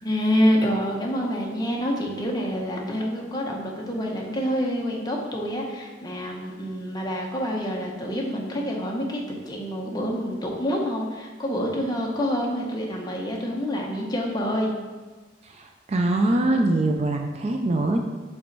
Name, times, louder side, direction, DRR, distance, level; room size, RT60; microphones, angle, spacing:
voice 1, 0.0-14.7, equal, 20° left, -1 dB, 0.8 m, -27 dB
voice 2, 15.4-18.0, right 2 dB, 35° right, 4 dB, 0.4 m, -23 dB
5.2 x 4.1 x 4.6 m, 1.3 s
head